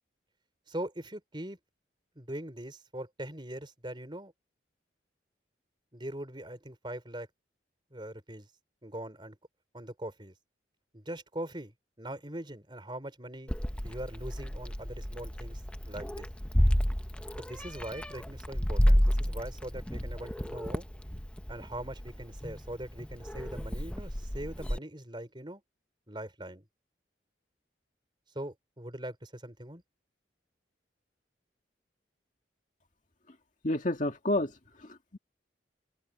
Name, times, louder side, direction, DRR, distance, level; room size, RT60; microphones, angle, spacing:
voice 1, 0.7-1.6 2.2-4.3 5.9-7.3 7.9-8.5 8.8-9.4 9.7-10.3 10.9-13.5 13.8-15.6 15.9-16.3 17.4-20.9 21.5-25.6 26.1-26.6 28.3-29.8, right 1 dB, 25° right, 4.6 m, -41 dB
Meow, 13.5-24.8, equal, 5° left, 0.7 m, -31 dB
voice 2, 33.6-35.2, left 1 dB, 45° left, 2.0 m, -31 dB
open air
head